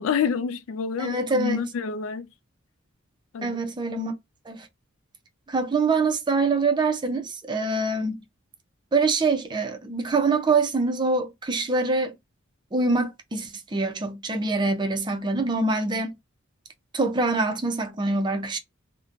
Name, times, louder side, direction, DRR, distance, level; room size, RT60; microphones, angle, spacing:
voice 1, 0.0-2.3 3.3-3.6, left 6 dB, 80° left, 0.3 m, -28 dB
voice 2, 1.0-1.6 3.4-4.1 4.5-4.7 5.5-8.2 8.9-12.1 12.7-16.1 16.9-18.6, right 3 dB, 20° right, 0.4 m, -24 dB
3.0 x 2.1 x 2.4 m
head